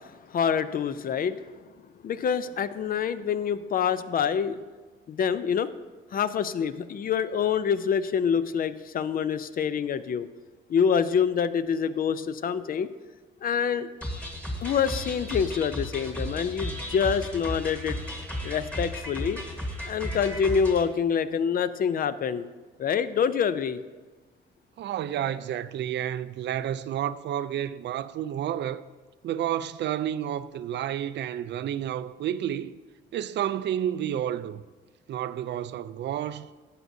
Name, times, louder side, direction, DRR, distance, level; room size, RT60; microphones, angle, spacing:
voice 1, 0.0-1.5 2.0-4.6 5.1-5.7 6.1-10.3 10.7-12.9 13.4-13.9 14.6-18.0 18.4-19.4 19.9-22.5 22.8-23.8, left 7 dB, 45° left, 0.5 m, -26 dB
sound 1, 14.0-20.8, equal, 5° left, 1.4 m, -34 dB
voice 2, 24.8-28.8 29.2-32.8 33.1-34.6 35.1-36.5, right 10 dB, 60° right, 0.4 m, -30 dB
12.5 x 8.1 x 2.7 m
cardioid pair, 90°, 20 cm